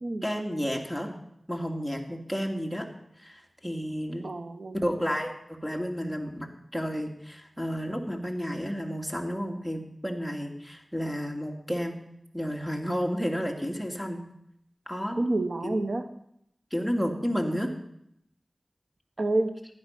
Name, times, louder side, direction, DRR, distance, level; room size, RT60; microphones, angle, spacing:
voice 1, 0.2-1.1 1.5-2.9 3.2-4.3 4.7-12.0 12.3-14.2 14.9-15.2 15.6-15.8 16.7-17.7, equal, ahead, 2 dB, 2.4 m, -31 dB
voice 2, 4.2-4.8 15.2-16.1 19.2-19.6, right 2 dB, 60° right, 8 dB, 0.9 m, -28 dB
16.0 x 11.0 x 5.9 m, 0.77 s
wide cardioid pair, 65°, 0 cm